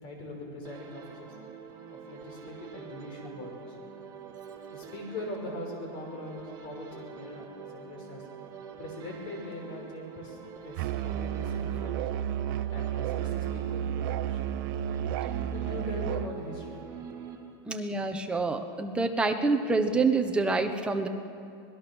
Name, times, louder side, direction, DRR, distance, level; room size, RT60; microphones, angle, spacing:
voice 1, 0.0-1.3 2.1-3.8 4.7-8.3 8.8-12.0 12.7-14.4 15.5-16.8, left 1 dB, 40° left, 1 dB, 5.7 m, -41 dB
sound 1, 0.6-17.9, right 6 dB, 30° right, 2.4 m, -45 dB
Musical instrument, 10.8-16.3, right 10 dB, 55° right, 0.8 m, -32 dB
voice 2, 17.7-21.1, right 3 dB, 10° right, 5 dB, 1.1 m, -27 dB
25.5 x 19.5 x 6.3 m, 2.6 s
supercardioid pair, 155°, 13 cm